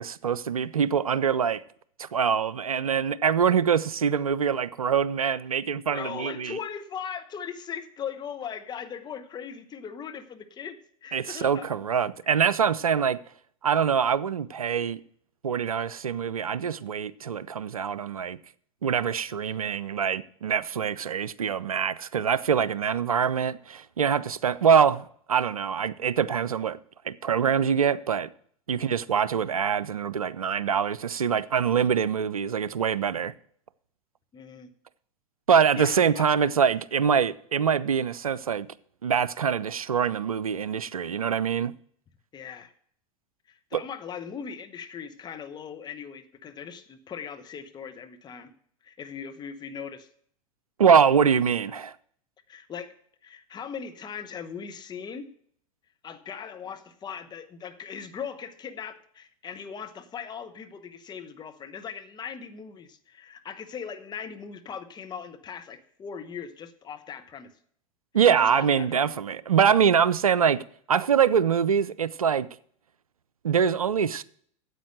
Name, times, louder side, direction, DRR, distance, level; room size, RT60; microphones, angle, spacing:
voice 1, 0.0-1.6 2.0-6.6 11.1-13.2 13.6-15.0 15.4-18.4 18.8-26.8 27.0-28.3 28.7-33.3 35.5-38.7 39.0-41.7 43.7-43.8 50.8-51.9 68.1-72.5 73.4-74.2, right 7 dB, 85° right, 0.4 m, -24 dB
voice 2, 5.9-11.7 28.7-29.0 34.3-34.7 35.8-36.3 42.3-42.7 43.5-48.5 48.8-50.1 52.5-52.9 53.2-55.3 56.0-67.5 68.4-69.1, left 7 dB, 25° left, 1.1 m, -39 dB
9.3 x 8.1 x 6.4 m
figure-of-eight pair, 85°, 18 cm